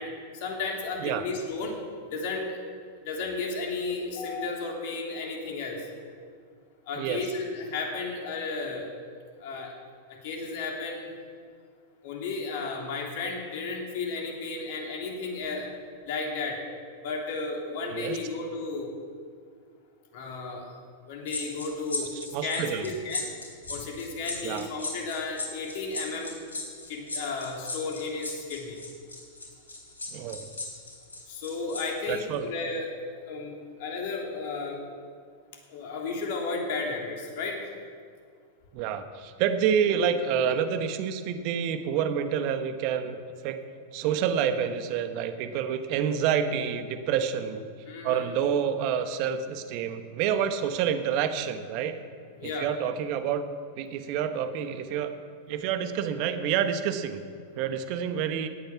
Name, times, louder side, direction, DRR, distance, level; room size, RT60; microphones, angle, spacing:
voice 1, 0.0-1.8 2.1-2.6 3.0-5.9 6.9-8.9 9.4-9.7 10.1-11.1 12.0-15.7 16.0-16.6 17.0-18.9 20.1-20.7 21.1-22.1 22.4-23.3 23.7-26.5 26.9-28.8 31.3-32.9 33.3-33.5 33.8-34.8 35.7-37.6 39.8-39.9 40.4-40.6 47.9-48.3 52.4-52.7, left 3 dB, 55° left, 0 dB, 3.2 m, -33 dB
sound 1, 21.3-31.8 32.1-32.3, left 3 dB, 85° left, 4.1 m, -36 dB
voice 2, 22.1-22.9 24.4-24.7 30.1-30.5 32.1-32.5 38.7-43.2 43.4-43.6 43.9-47.6 48.0-52.0 52.4-53.4 53.8-55.1 55.5-57.2 57.5-58.5, right 8 dB, 50° right, 9 dB, 1.2 m, -28 dB
17.5 x 9.0 x 5.9 m, 2.1 s
hypercardioid pair, 95°, 0 cm